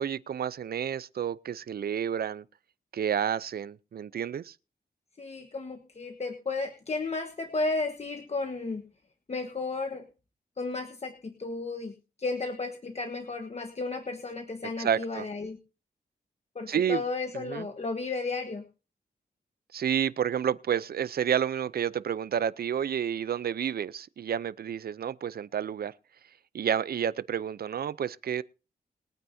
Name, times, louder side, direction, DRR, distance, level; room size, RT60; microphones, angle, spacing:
voice 1, 0.0-2.4 2.9-4.5 14.8-15.3 16.7-17.0 17.3-17.7 19.7-25.9 26.5-28.4, right 8 dB, 65° right, 0.6 m, -30 dB
voice 2, 5.2-8.8 9.3-10.1 10.6-15.6 16.5-18.6, left 3 dB, 40° left, 1.4 m, -33 dB
22.5 x 9.1 x 2.7 m
cardioid pair, 85°, 17 cm